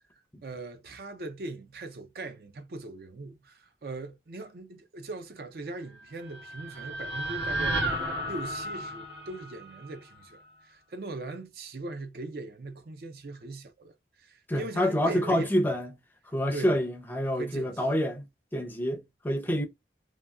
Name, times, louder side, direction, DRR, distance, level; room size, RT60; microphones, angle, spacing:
voice 1, 0.4-8.0 8.3-15.5 16.5-16.7 17.4-18.0, right 2 dB, 55° right, 0.5 m, -40 dB
sound 1, 6.0-10.2, right 1 dB, 80° right, 1.1 m, -33 dB
voice 2, 14.5-15.9 16.3-18.3 18.5-19.7, equal, 10° left, 0.5 m, -27 dB
2.8 x 2.7 x 2.2 m
head